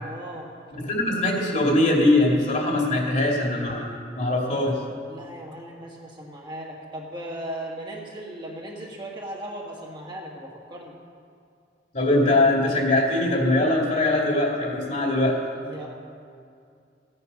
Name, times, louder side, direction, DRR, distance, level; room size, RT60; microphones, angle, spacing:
voice 1, 0.0-0.5 5.1-10.9 15.6-15.9, right 1 dB, 25° right, -2 dB, 1.7 m, -37 dB
voice 2, 0.8-3.9 4.1-4.8 11.9-15.4, left 2 dB, 40° left, -1 dB, 2.4 m, -21 dB
16.0 x 9.9 x 5.4 m, 2.4 s
head